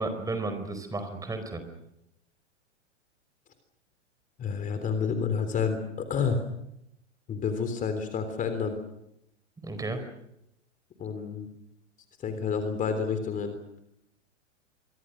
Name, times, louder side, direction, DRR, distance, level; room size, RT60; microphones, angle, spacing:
voice 1, 0.0-1.6 9.6-10.0, right 2 dB, 10° right, 8 dB, 4.7 m, -33 dB
voice 2, 4.4-6.4 7.3-8.8 11.0-11.5 12.2-13.5, left 6 dB, 20° left, 8 dB, 3.5 m, -29 dB
28.5 x 24.0 x 6.4 m, 0.81 s
figure-of-eight pair, 110°, 36 cm